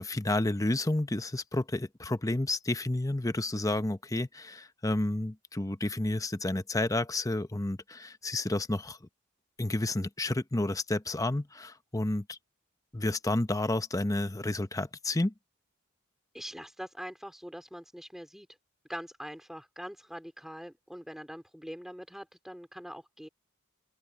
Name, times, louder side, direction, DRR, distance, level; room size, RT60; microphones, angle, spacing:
voice 1, 0.0-9.0 9.6-12.4 12.9-15.3, left 2 dB, 15° left, 0.8 m, -30 dB
voice 2, 16.3-18.5 18.9-23.3, equal, ahead, 3.8 m, -43 dB
open air
head